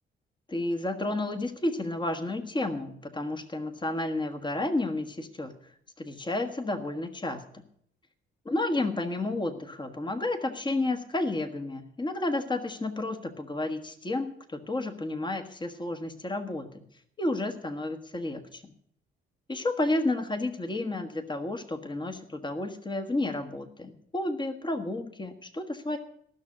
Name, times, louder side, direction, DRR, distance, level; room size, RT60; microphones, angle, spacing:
voice 1, 0.5-5.5 6.0-7.4 8.5-16.8 17.2-18.6 19.5-26.0, left 2 dB, 25° left, 7 dB, 1.6 m, -31 dB
14.5 x 6.5 x 8.6 m, 0.67 s
cardioid pair, 90°, 20 cm